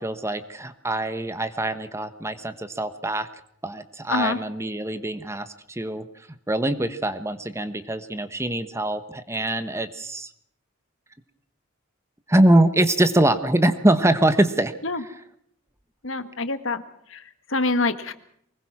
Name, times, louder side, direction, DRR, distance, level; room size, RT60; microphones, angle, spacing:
voice 1, 0.0-3.3 3.6-10.3 12.3-15.2, right 1 dB, 15° right, 12 dB, 1.1 m, -23 dB
voice 2, 16.0-16.8 17.1-17.2 17.5-18.1, left 3 dB, 65° left, 11 dB, 1.6 m, -25 dB
24.0 x 20.5 x 6.0 m, 0.67 s
head